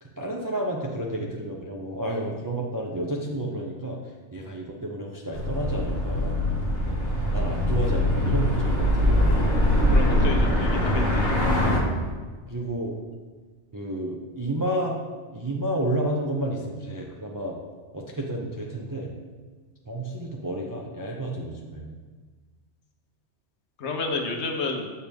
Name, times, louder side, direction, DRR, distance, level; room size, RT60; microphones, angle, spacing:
voice 1, 0.0-6.4 7.3-9.5 12.5-13.0 13.7-15.0 15.3-17.6 17.9-19.1 19.9-22.0, right 1 dB, 30° right, -2 dB, 0.3 m, -31 dB
sound 1, 5.3-11.8, left 1 dB, 45° left, 1.2 m, -22 dB
voice 2, 9.9-11.3 23.8-24.9, left 3 dB, 75° left, 3 dB, 1.1 m, -30 dB
7.3 x 4.4 x 3.4 m, 1.4 s
omnidirectional pair, 1.2 m